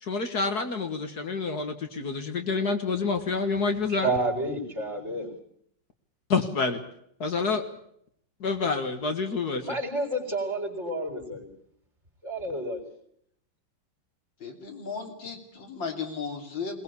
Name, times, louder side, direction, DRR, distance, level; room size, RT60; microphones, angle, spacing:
voice 1, 0.0-4.1 6.3-6.8 7.2-7.6 8.4-9.7, left 4 dB, 60° left, 6 dB, 2.1 m, -28 dB
voice 2, 3.9-5.3 9.7-11.5 12.2-12.8, right 2 dB, 35° right, 2 dB, 5.0 m, -30 dB
voice 3, 14.4-16.8, left 5 dB, 85° left, 3 dB, 3.8 m, -35 dB
21.5 x 20.0 x 8.4 m, 0.70 s
omnidirectional pair, 2.0 m